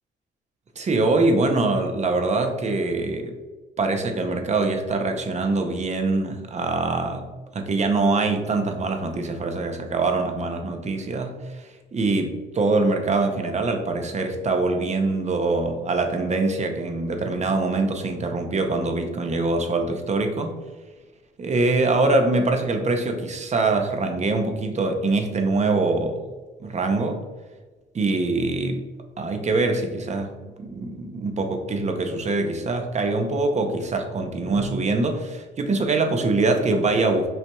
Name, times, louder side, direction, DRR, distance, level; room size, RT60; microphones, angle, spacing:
voice 1, 0.8-3.3 3.8-7.3 7.5-20.6 21.4-26.2 26.6-27.2 27.9-28.8 29.2-30.3 30.6-37.3, right 3 dB, 35° right, 5 dB, 0.6 m, -23 dB
5.6 x 2.8 x 2.3 m, 1.3 s
cardioid pair, 90°, 20 cm